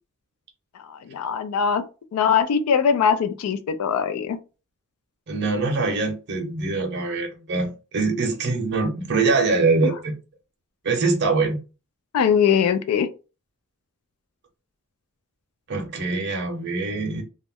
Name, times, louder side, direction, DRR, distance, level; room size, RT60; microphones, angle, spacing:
voice 1, 0.9-1.8 2.1-4.4 12.1-13.1, left 7 dB, 75° left, 0.3 m, -21 dB
voice 2, 5.3-10.1 10.8-11.6 15.7-17.2, right 3 dB, 50° right, 0.6 m, -23 dB
2.3 x 2.1 x 3.4 m
head